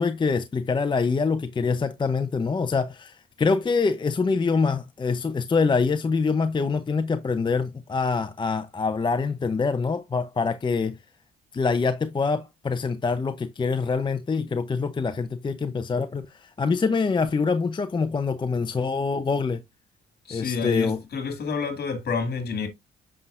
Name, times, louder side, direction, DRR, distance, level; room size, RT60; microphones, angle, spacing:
voice 1, 0.0-11.0 11.5-19.6 20.3-21.0, left 4 dB, 25° left, 0.6 m, -25 dB
voice 2, 20.3-22.7, left 5 dB, 55° left, 2.1 m, -29 dB
7.6 x 5.6 x 2.4 m
cardioid pair, 90°, 20 cm